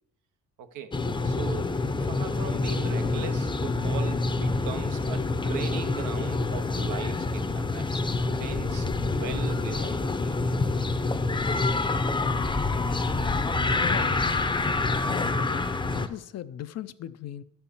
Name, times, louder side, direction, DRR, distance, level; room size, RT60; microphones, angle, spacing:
voice 1, 0.6-0.9 1.2-8.0 8.4-10.4, right 7 dB, 80° right, 0.9 m, -39 dB
sound 1, 0.9-16.1, left 3 dB, 15° left, 0.7 m, -27 dB
voice 2, 13.8-14.3 15.1-15.6 15.9-17.4, left 11 dB, 60° left, 0.5 m, -37 dB
11.5 x 4.4 x 7.0 m
cardioid pair, 90°, 30 cm